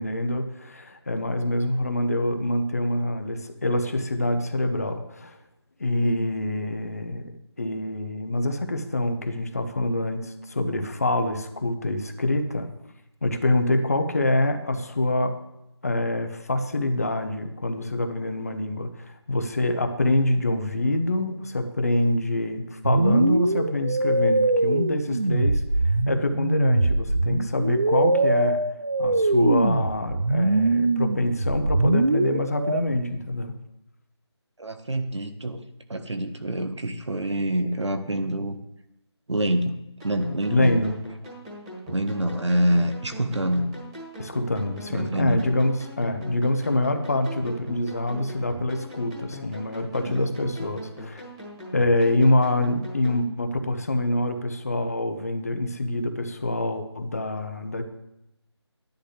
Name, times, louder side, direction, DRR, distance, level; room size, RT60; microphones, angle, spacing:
voice 1, 0.0-5.4 5.8-7.3 7.6-12.7 13.2-15.4 15.8-25.6 26.1-28.6 29.0-33.5 40.5-41.0 44.2-51.2 51.7-57.8, left 1 dB, 35° left, 7 dB, 0.8 m, -25 dB
sound 1, 22.8-32.8, right 2 dB, 40° right, 0.4 m, -22 dB
voice 2, 34.6-35.6 35.9-38.6 39.3-40.8 41.9-43.7 44.9-45.5 50.0-50.3, right 1 dB, 80° right, 7 dB, 1.5 m, -26 dB
sound 2, 40.0-53.2, equal, 10° right, 2.0 m, -41 dB
11.5 x 10.5 x 3.4 m, 0.87 s
figure-of-eight pair, 175°, 15 cm